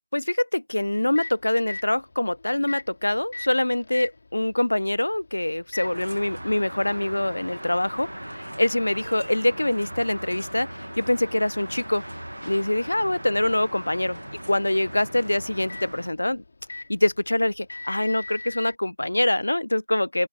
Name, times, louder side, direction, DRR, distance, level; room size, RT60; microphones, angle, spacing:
voice 1, 0.1-12.0 12.5-14.2 14.5-16.4 16.9-20.3, left 1 dB, 80° left, 0.3 m, -24 dB
Microwave oven, 0.7-18.8, left 3 dB, 50° left, 3.0 m, -43 dB
sound 1, 5.8-16.1, right 1 dB, 85° right, 1.3 m, -39 dB
open air
figure-of-eight pair, 170°, 0 cm